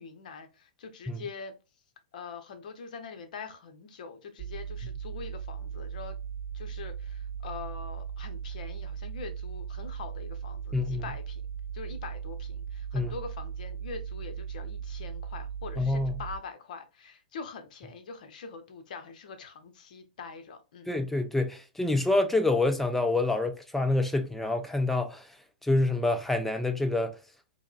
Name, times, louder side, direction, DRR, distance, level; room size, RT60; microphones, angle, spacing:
voice 1, 0.0-1.5 2.1-6.2 6.5-11.4 11.7-20.9, left 5 dB, 55° left, 0.7 m, -43 dB
sound 1, 4.4-16.4, right 7 dB, 35° right, 0.6 m, -38 dB
voice 2, 10.7-11.0 12.9-13.1 15.8-16.1 20.9-25.2 25.6-27.2, left 2 dB, 5° left, 0.4 m, -27 dB
4.6 x 2.1 x 2.3 m
figure-of-eight pair, 110°, 5 cm